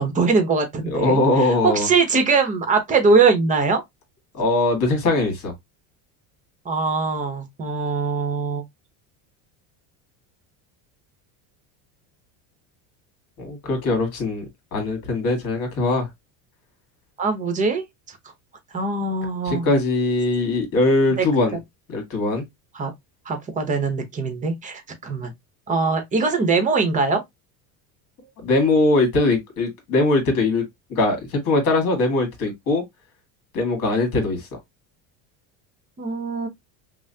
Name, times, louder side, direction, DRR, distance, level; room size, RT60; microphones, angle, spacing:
voice 1, 0.0-3.8 6.6-8.6 17.2-18.2 18.7-19.7 21.1-21.2 22.7-22.9 23.3-25.3 25.7-27.2 36.0-36.5, right 4 dB, 20° right, 0.7 m, -22 dB
voice 2, 0.9-1.9 4.3-5.5 13.4-14.4 14.7-16.1 19.5-21.6 21.9-22.5 28.4-30.6 30.9-32.8 33.5-34.5, left 2 dB, 50° left, 1.8 m, -21 dB
5.4 x 2.0 x 2.7 m
cardioid pair, 165°, 42 cm